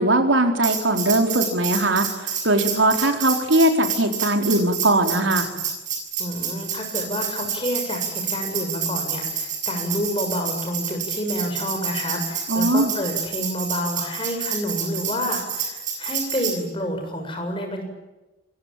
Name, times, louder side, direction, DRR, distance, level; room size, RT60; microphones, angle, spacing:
voice 1, 0.0-5.5 12.5-12.9, right 1 dB, 90° right, 5 dB, 4.2 m, -20 dB
Tambourine, 0.6-16.6, right 7 dB, 40° right, 7.2 m, -28 dB
voice 2, 6.2-17.8, equal, 25° left, 3 dB, 7.2 m, -29 dB
26.5 x 22.0 x 9.0 m, 1.1 s
head